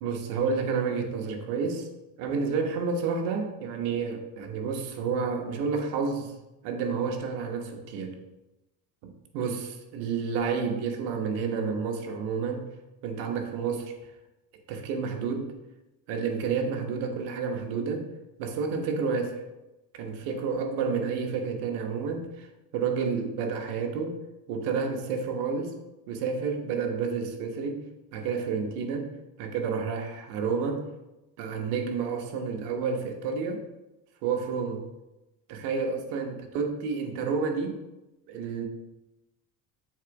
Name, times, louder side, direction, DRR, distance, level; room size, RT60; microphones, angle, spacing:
voice 1, 0.0-1.9 2.2-6.3 6.6-8.2 9.0-12.7 13.0-13.9 14.7-15.5 16.1-18.0 18.4-19.4 19.9-22.5 22.7-24.2 24.5-25.7 26.1-27.8 28.1-29.1 29.4-30.8 31.4-33.6 34.2-34.9 35.5-37.8 38.3-38.7, right 5 dB, 90° right, 4 dB, 1.2 m, -30 dB
7.5 x 3.9 x 4.7 m, 0.97 s
supercardioid pair, 80°, 49 cm